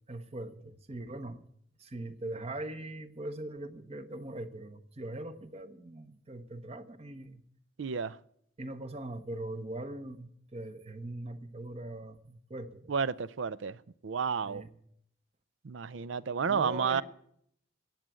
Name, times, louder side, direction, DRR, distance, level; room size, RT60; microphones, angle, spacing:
voice 1, 0.1-1.4 1.8-7.4 8.6-12.9 14.4-14.7 16.5-17.0, right 1 dB, 35° right, 0.9 m, -41 dB
voice 2, 7.8-8.2 12.9-14.6 15.6-17.0, right 6 dB, 75° right, 0.5 m, -31 dB
14.0 x 8.9 x 8.3 m
head